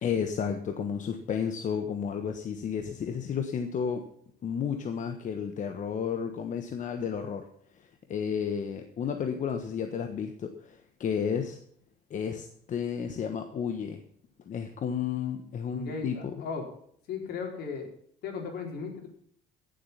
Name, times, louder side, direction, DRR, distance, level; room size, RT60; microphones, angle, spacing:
voice 1, 0.0-4.0 4.4-7.5 8.1-11.6 12.1-14.0 14.5-16.3, left 7 dB, 50° left, 6 dB, 1.3 m, -32 dB
voice 2, 15.7-16.7 17.1-17.9 18.2-19.1, left 5 dB, 75° left, 2 dB, 4.5 m, -36 dB
16.5 x 7.8 x 5.7 m, 0.63 s
cardioid pair, 110°, 17 cm